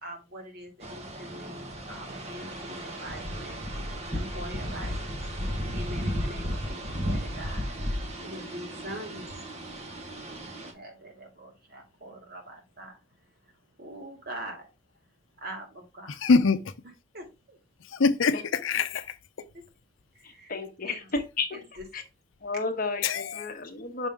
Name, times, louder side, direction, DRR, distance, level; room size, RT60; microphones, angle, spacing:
voice 1, 0.0-3.6 4.1-5.1 5.4-7.7 8.2-9.3 10.2-13.5 13.8-14.7 15.4-16.2 17.1-17.6 19.5-19.6 20.1-20.5 20.8-21.0 21.5-21.9, right 1 dB, 50° right, 2.2 m, -43 dB
sound 1, 0.8-10.7, equal, 30° right, 1.3 m, -34 dB
voice 2, 16.1-16.7 17.8-19.5 23.0-23.4, left 4 dB, 75° left, 0.6 m, -25 dB
voice 3, 20.2-21.6 21.9-22.0 22.4-24.1, left 3 dB, 45° left, 1.1 m, -32 dB
6.1 x 5.3 x 3.5 m
head